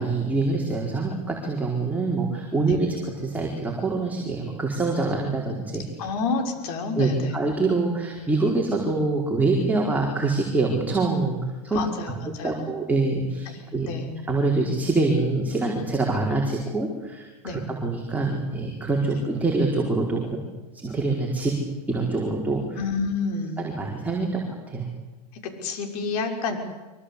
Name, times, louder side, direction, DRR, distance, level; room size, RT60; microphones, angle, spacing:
voice 1, 0.0-5.9 7.0-11.4 11.6-11.8 12.4-13.9 14.3-20.4 20.7-21.6 21.9-22.8 23.6-24.9, right 3 dB, 5° right, -2 dB, 4.7 m, -25 dB
voice 2, 6.0-7.4 11.7-12.7 13.4-14.1 17.4-17.6 19.1-19.2 22.8-23.5 25.4-26.6, left 4 dB, 65° left, 4 dB, 6.0 m, -29 dB
25.0 x 24.5 x 8.5 m, 1.2 s
hypercardioid pair, 110°, 21 cm